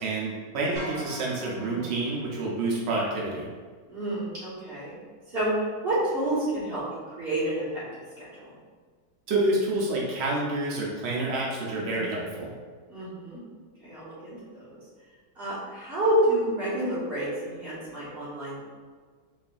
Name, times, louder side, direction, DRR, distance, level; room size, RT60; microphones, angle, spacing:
voice 1, 0.0-3.5 9.3-12.5, right 2 dB, 80° right, -4 dB, 0.5 m, -28 dB
sound 1, 0.8-3.1, equal, 60° right, 2.0 m, -43 dB
voice 2, 1.5-1.8 3.9-4.9 5.3-7.8 8.2-8.5 11.7-12.1 12.9-13.4 13.8-14.8 15.3-18.6, right 1 dB, 35° right, -10 dB, 1.6 m, -29 dB
4.2 x 3.2 x 2.5 m, 1.5 s
omnidirectional pair, 2.0 m